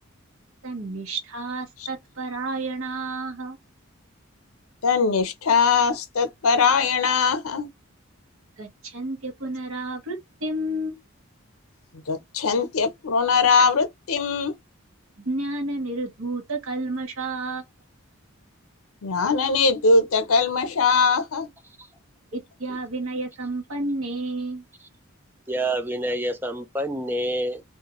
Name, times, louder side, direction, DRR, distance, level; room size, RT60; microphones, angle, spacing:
voice 1, 0.6-3.6 8.6-11.0 15.3-17.6 22.3-24.6, right 2 dB, 70° right, 0.9 m, -31 dB
voice 2, 4.8-7.7 12.1-14.5 19.0-21.5, left 4 dB, 85° left, 0.7 m, -21 dB
voice 3, 25.5-27.6, right 1 dB, 10° right, 0.3 m, -27 dB
2.4 x 2.2 x 2.9 m
head